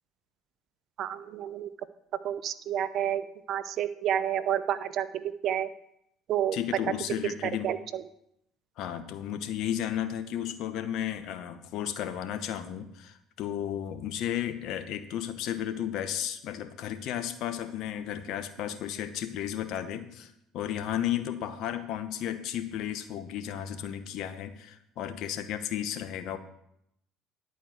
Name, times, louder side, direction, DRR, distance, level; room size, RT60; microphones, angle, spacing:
voice 1, 1.0-1.7 2.2-5.7 6.3-6.6 7.4-8.0, right 10 dB, 55° right, 13 dB, 0.7 m, -30 dB
voice 2, 6.5-7.7 8.8-26.4, left 10 dB, 65° left, 10 dB, 1.0 m, -33 dB
11.0 x 4.6 x 8.0 m, 0.77 s
hypercardioid pair, 70°, 0 cm